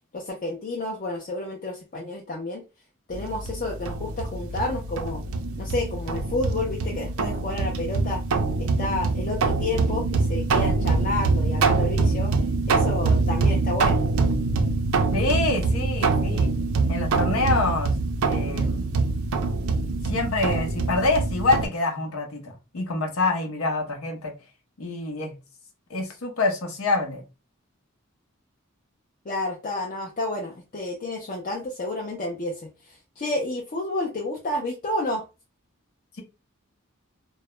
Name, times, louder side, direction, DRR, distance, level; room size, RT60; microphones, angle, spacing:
voice 1, 0.1-2.6 3.1-5.2 5.6-8.2 8.6-12.3 12.7-14.0 29.2-35.2, left 2 dB, 40° left, 0.5 m, -30 dB
sound 1, 3.1-21.7, right 3 dB, 85° right, 0.4 m, -24 dB
voice 2, 15.1-16.5 16.9-17.9 18.2-18.9 20.0-24.3 24.8-25.3 25.9-27.2, left 2 dB, 85° left, 0.7 m, -26 dB
2.3 x 2.0 x 2.9 m
head